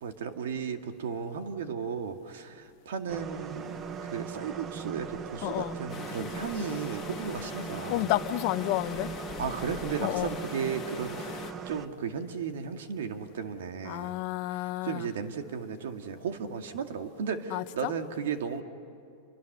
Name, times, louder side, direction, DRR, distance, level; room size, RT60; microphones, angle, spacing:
voice 1, 0.0-3.8 4.0-8.1 9.4-14.1 14.5-18.6, right 6 dB, 85° right, 6 dB, 2.1 m, -35 dB
sound 1, 3.1-11.9, right 7 dB, 25° right, 0.9 m, -40 dB
voice 2, 5.4-5.7 7.9-9.1 10.0-10.3 13.8-15.1 17.5-17.9, left 18 dB, 50° left, 14 dB, 0.7 m, -30 dB
sound 2, 5.9-11.5, left 9 dB, 30° left, 1.7 m, -42 dB
30.0 x 24.0 x 6.8 m, 2.6 s
supercardioid pair, 140°, 0 cm